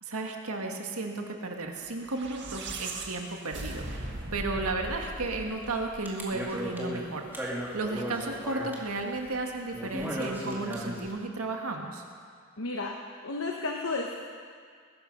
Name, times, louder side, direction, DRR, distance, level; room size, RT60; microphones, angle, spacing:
voice 1, 0.0-12.0, right 3 dB, 85° right, 2 dB, 1.9 m, -34 dB
sound 1, 2.0-6.4, right 2 dB, 55° right, 1.8 m, -39 dB
sound 2, 4.8-5.4 5.6-11.1, equal, 10° right, 2.1 m, -36 dB
voice 2, 12.6-13.0 13.2-14.1, left 3 dB, 65° left, 1 dB, 1.1 m, -32 dB
20.5 x 12.0 x 5.4 m, 2.1 s
head